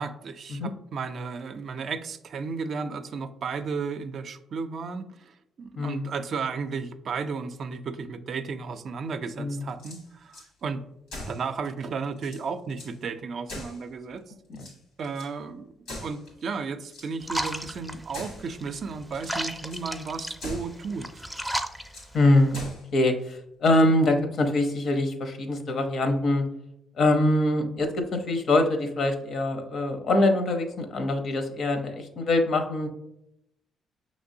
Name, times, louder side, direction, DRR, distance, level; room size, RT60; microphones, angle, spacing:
voice 1, 0.0-10.8 11.3-14.3 15.0-15.7 16.0-21.3, right 5 dB, 60° right, 9 dB, 0.4 m, -34 dB
voice 2, 5.8-6.1 9.4-9.7 14.5-14.6 22.1-22.6 22.9-26.4 27.0-32.9, left 2 dB, 60° left, 6 dB, 0.7 m, -24 dB
sound 1, 9.7-10.5 11.1-11.5 11.9-12.0 12.2-13.0 13.5-14.2 14.5-15.3 15.9-16.4 16.9-17.6 18.1-18.5 19.0-19.4 19.7-19.9 20.4-20.8 21.4-22.1 22.5-22.9, left 1 dB, 90° left, 1.7 m, -41 dB
sound 2, 17.2-22.6, equal, ahead, 0.4 m, -35 dB
5.8 x 3.0 x 2.7 m, 0.81 s
cardioid pair, 90°, 0 cm